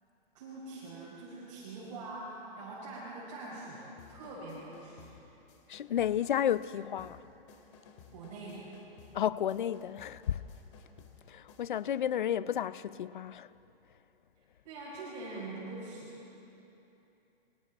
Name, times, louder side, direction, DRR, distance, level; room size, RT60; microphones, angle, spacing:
voice 1, 0.3-5.1 8.1-8.7 14.6-16.2, right 2 dB, 30° right, 5.3 m, -44 dB
sound 1, 4.0-12.1, left 6 dB, 30° left, 2.1 m, -58 dB
voice 2, 5.7-7.2 9.1-10.4 11.3-13.5, left 10 dB, 50° left, 0.6 m, -32 dB
29.5 x 23.5 x 4.1 m
hypercardioid pair, 175°, 31 cm